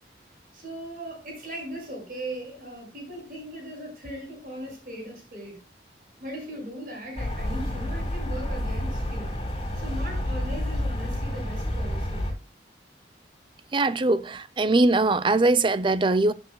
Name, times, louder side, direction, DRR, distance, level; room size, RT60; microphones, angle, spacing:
voice 1, 0.5-5.6 6.2-9.3 9.8-12.2, right 1 dB, 50° right, 6.1 m, -38 dB
sound 1, 7.2-12.3, left 1 dB, 35° left, 4.2 m, -29 dB
voice 2, 13.7-16.3, right 2 dB, 30° right, 0.5 m, -21 dB
16.0 x 8.0 x 2.3 m
head